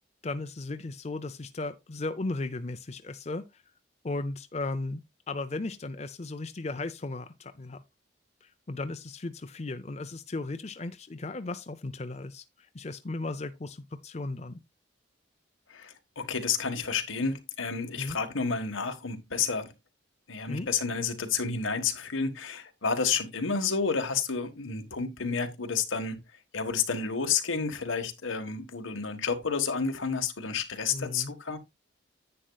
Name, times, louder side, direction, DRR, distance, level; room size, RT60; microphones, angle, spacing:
voice 1, 0.2-3.6 4.0-5.0 5.3-7.8 8.4-14.6 18.0-18.2 20.5-20.7 30.9-31.3, left 2 dB, 35° left, 0.5 m, -36 dB
voice 2, 15.7-19.7 20.3-26.2 26.5-31.6, left 5 dB, 90° left, 1.5 m, -30 dB
10.0 x 8.8 x 2.3 m
head